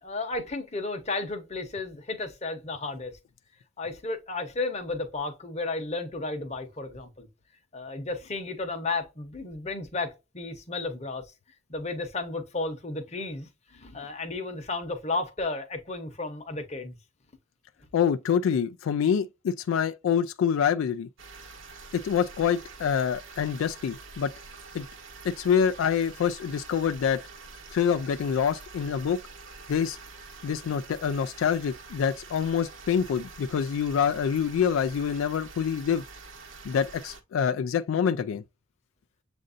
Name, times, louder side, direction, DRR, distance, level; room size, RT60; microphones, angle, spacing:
voice 1, 0.0-3.2 3.8-7.3 7.7-11.3 11.7-17.0, left 3 dB, 35° left, 0.9 m, -33 dB
voice 2, 17.9-21.1 21.9-24.3 24.7-24.9 25.2-27.2 27.7-29.2 29.7-30.0 30.4-36.0 36.7-38.4, left 7 dB, 80° left, 0.3 m, -26 dB
sound 1, 21.2-37.2, right 4 dB, 70° right, 1.0 m, -46 dB
7.5 x 2.6 x 2.5 m
head